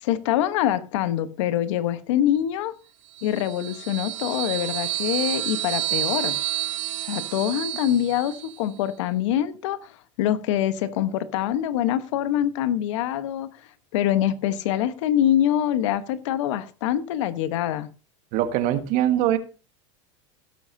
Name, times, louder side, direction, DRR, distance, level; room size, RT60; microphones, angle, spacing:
voice 1, 0.0-2.7 3.2-6.4 7.1-9.9 10.2-13.5 13.9-17.9, left 11 dB, 75° left, 1.1 m, -24 dB
sound 1, 3.1-8.6, right 15 dB, 80° right, 1.9 m, -29 dB
voice 2, 18.3-19.4, right 11 dB, 55° right, 1.6 m, -22 dB
17.0 x 7.6 x 2.7 m
supercardioid pair, 125°, 16 cm